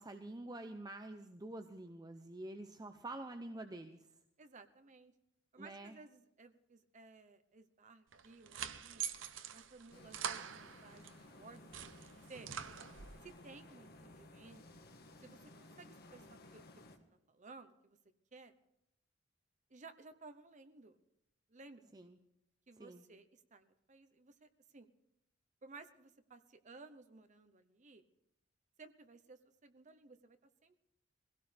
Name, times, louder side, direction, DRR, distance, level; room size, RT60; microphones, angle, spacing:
voice 1, 0.0-4.1 5.6-6.0 21.9-22.2 22.8-23.0, right 2 dB, 20° right, 6 dB, 0.7 m, -47 dB
voice 2, 4.4-5.1 5.5-9.0 9.5-12.5 13.2-14.9 15.2-16.8 17.3-18.0 18.3-18.5 19.7-21.0 21.5-22.1 22.7-24.9 25.6-28.0 28.8-30.8, right 3 dB, 40° right, 8 dB, 0.9 m, -57 dB
sound 1, 8.1-11.2 11.5-13.3, right 8 dB, 85° right, 0.8 m, -45 dB
wreck bg, 9.9-17.0, left 1 dB, 55° left, 1.5 m, -57 dB
23.0 x 17.0 x 3.4 m, 0.83 s
head